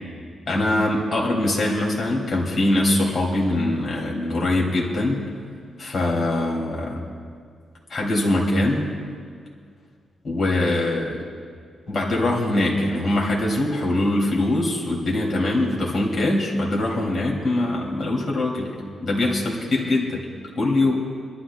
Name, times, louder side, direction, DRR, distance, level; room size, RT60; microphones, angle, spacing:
voice 1, 0.5-5.2 5.8-7.1 7.9-8.9 10.2-11.3 11.9-20.2 20.6-21.1, left 1 dB, 35° left, -3 dB, 2.6 m, -23 dB
28.0 x 12.5 x 2.2 m, 2.1 s
wide cardioid pair, 145°, 0 cm